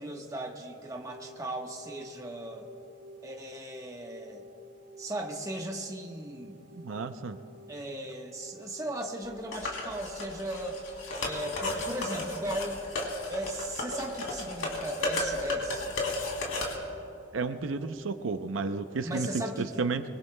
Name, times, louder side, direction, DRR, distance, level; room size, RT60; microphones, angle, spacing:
voice 1, 0.0-2.7 3.2-4.4 5.0-6.6 7.7-10.8 11.1-12.8 13.3-15.9 19.0-19.8, right 1 dB, 15° right, 2 dB, 1.1 m, -37 dB
sound 1, 1.0-19.0, equal, 45° right, 4.6 m, -52 dB
voice 2, 6.7-7.4 17.3-19.3 19.6-20.0, right 4 dB, 90° right, 9 dB, 0.6 m, -32 dB
sound 2, 9.5-16.7, left 2 dB, 90° left, 2.9 m, -34 dB
25.5 x 22.5 x 2.2 m, 2.7 s
head